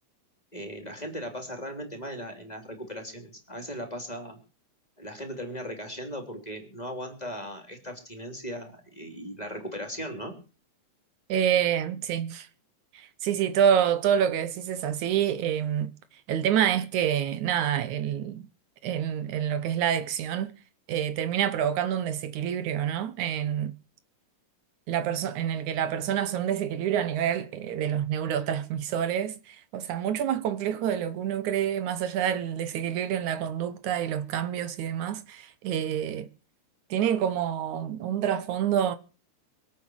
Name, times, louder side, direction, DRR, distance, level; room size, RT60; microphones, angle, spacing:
voice 1, 0.5-4.4 5.0-10.4, equal, 15° left, 3.3 m, -38 dB
voice 2, 11.3-12.5 12.9-15.9 16.3-18.5 18.8-20.5 20.9-23.7 24.9-36.3 36.9-39.0, right 9 dB, 75° right, 2.4 m, -27 dB
24.0 x 8.6 x 6.4 m
omnidirectional pair, 3.5 m